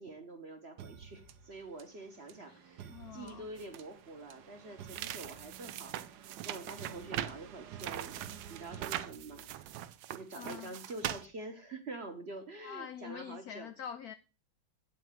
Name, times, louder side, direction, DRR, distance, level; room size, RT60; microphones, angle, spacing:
voice 1, 0.0-6.0 6.4-9.8 10.1-13.7, right 2 dB, 40° right, 1.0 m, -46 dB
sound 1, 0.8-9.6, right 8 dB, 60° right, 1.3 m, -52 dB
voice 2, 2.9-3.5 10.3-10.7 12.6-14.1, left 9 dB, 75° left, 0.8 m, -45 dB
sound 2, 3.6-3.8 4.9-7.4 7.8-11.3, right 12 dB, 80° right, 1.4 m, -41 dB
9.4 x 4.5 x 7.4 m
omnidirectional pair, 2.2 m